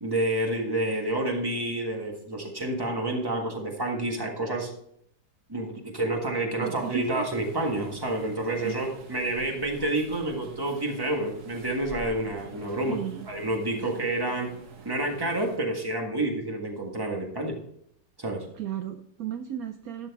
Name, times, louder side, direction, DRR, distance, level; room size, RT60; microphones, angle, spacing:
voice 1, 0.0-4.7 5.5-13.0 13.3-14.5 14.8-17.5 18.2-18.4, right 1 dB, 15° right, 1 dB, 1.4 m, -29 dB
voice 2, 6.6-7.3 8.6-8.8 12.9-13.3 13.7-13.9 18.5-20.1, right 9 dB, 75° right, 8 dB, 0.8 m, -35 dB
sound 1, 6.8-15.6, right 5 dB, 50° right, 1.3 m, -46 dB
11.5 x 6.5 x 3.6 m, 0.70 s
omnidirectional pair, 2.1 m